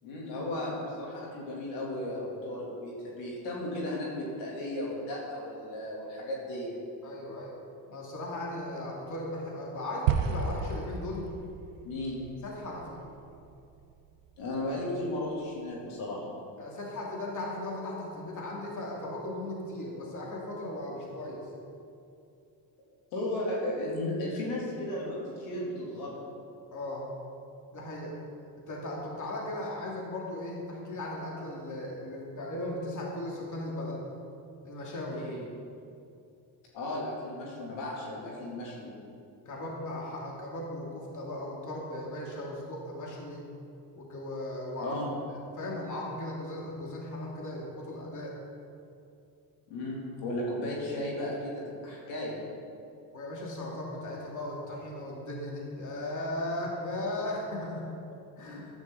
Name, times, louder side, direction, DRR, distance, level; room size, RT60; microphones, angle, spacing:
voice 1, 0.0-6.8 11.8-12.2 14.4-16.2 23.1-26.3 35.1-35.4 36.7-38.9 44.8-45.1 49.7-52.4 58.4-58.7, left 1 dB, 80° left, -4 dB, 3.3 m, -35 dB
voice 2, 7.0-7.6 7.9-11.3 12.4-13.0 16.6-21.5 26.7-27.1 27.7-28.1 28.6-34.0 34.6-35.3 39.4-43.4 44.0-45.0 45.3-48.4 53.1-57.9 58.4-58.6, left 1 dB, 40° left, -2 dB, 2.7 m, -37 dB
sound 1, 10.1-14.4, right 7 dB, 90° right, 0.9 m, -33 dB
13.5 x 10.5 x 4.1 m, 2.5 s
supercardioid pair, 75°, 46 cm